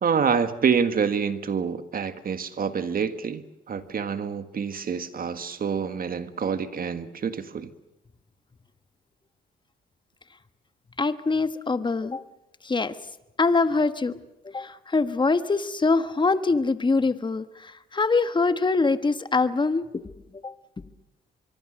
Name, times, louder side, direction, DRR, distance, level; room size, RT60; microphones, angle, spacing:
voice 1, 0.0-7.7, right 6 dB, 45° right, 10 dB, 1.8 m, -27 dB
voice 2, 11.0-12.2 12.6-13.0 13.4-14.2 14.4-20.0 20.3-20.5, left 3 dB, 25° left, 12 dB, 1.4 m, -24 dB
24.0 x 23.0 x 6.5 m, 0.93 s
cardioid pair, 90°, 20 cm